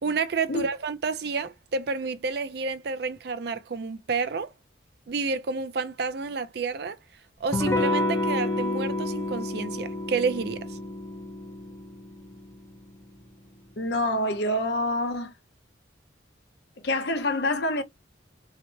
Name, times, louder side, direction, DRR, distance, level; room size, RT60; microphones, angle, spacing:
voice 1, 0.0-4.5 5.1-7.0 7.4-10.8, right 4 dB, 55° right, 0.4 m, -30 dB
Electric guitar / Strum, 7.5-12.9, left 2 dB, 15° left, 0.7 m, -29 dB
voice 2, 13.8-15.3 16.8-17.8, left 1 dB, 60° left, 0.6 m, -26 dB
2.8 x 2.1 x 3.0 m
head